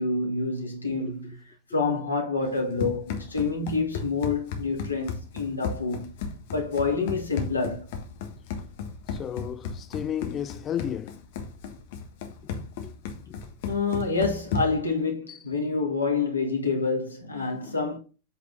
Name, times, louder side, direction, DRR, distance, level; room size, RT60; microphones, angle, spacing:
voice 1, 0.0-1.4 1.7-6.1 6.5-7.9 13.6-18.0, left 4 dB, 80° left, 2.2 m, -27 dB
Run, 2.4-14.9, left 5 dB, 50° left, 1.4 m, -35 dB
voice 2, 9.1-11.2 12.8-12.9 13.3-13.4 15.3-15.4 17.3-17.8, left 10 dB, 25° left, 0.4 m, -34 dB
8.2 x 4.3 x 4.0 m
figure-of-eight pair, 90°, 0 cm